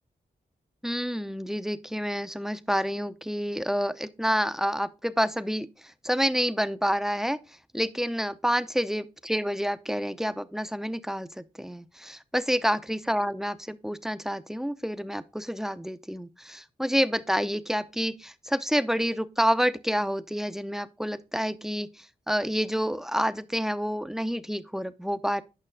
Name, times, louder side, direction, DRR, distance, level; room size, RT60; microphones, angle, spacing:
voice 1, 0.8-5.7 6.0-7.4 7.7-25.4, equal, ahead, 0.6 m, -28 dB
9.0 x 5.6 x 3.7 m
cardioid pair, 40°, 18 cm